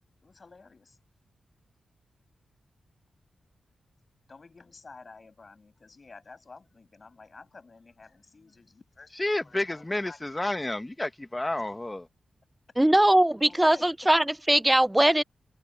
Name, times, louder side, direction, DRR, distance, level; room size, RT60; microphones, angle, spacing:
voice 1, 0.2-1.0 4.3-10.8 13.5-14.1, left 4 dB, 35° left, 7.3 m, -51 dB
voice 2, 9.1-12.0, left 1 dB, 15° left, 1.2 m, -30 dB
voice 3, 12.8-15.2, right 1 dB, 10° right, 0.3 m, -21 dB
wide cardioid pair, 120°, 0 cm